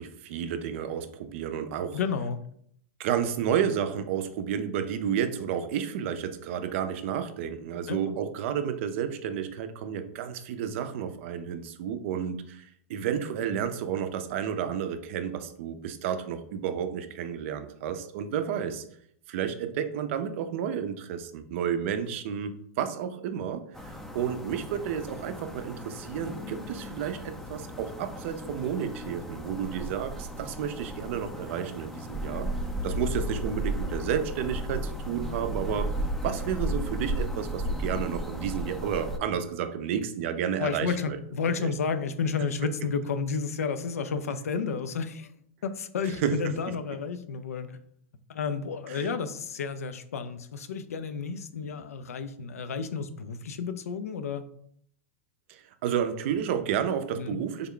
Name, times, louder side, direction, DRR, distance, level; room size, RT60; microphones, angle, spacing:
voice 1, 0.0-2.0 3.0-18.8 19.3-32.5 32.8-41.2 41.6-41.7 42.6-42.7 46.0-46.6 48.9-49.1 55.5-57.7, right 8 dB, 60° right, 9 dB, 0.4 m, -31 dB
voice 2, 1.9-2.4 7.9-8.1 40.6-45.3 45.6-47.8 48.3-54.4 57.1-57.4, left 5 dB, 85° left, 10 dB, 0.4 m, -31 dB
sound 1, 23.7-39.2, equal, 5° left, 0.4 m, -35 dB
3.5 x 2.2 x 3.7 m, 0.67 s
hypercardioid pair, 120°, 8 cm